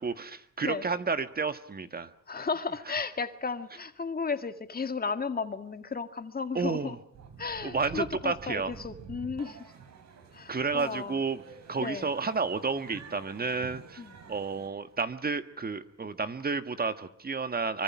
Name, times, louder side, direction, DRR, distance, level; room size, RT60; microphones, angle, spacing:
voice 1, 0.0-2.1 6.6-6.9 7.6-8.7 10.5-11.4 11.7-17.8, right 4 dB, 30° right, 1.6 m, -31 dB
voice 2, 2.3-7.0 7.4-9.7 10.3-11.2 11.8-12.1 14.0-14.1, left 5 dB, 30° left, 2.0 m, -34 dB
sound 1, 7.1-14.9, right 6 dB, 60° right, 4.7 m, -49 dB
25.0 x 24.5 x 6.1 m
cardioid pair, 90°, 30 cm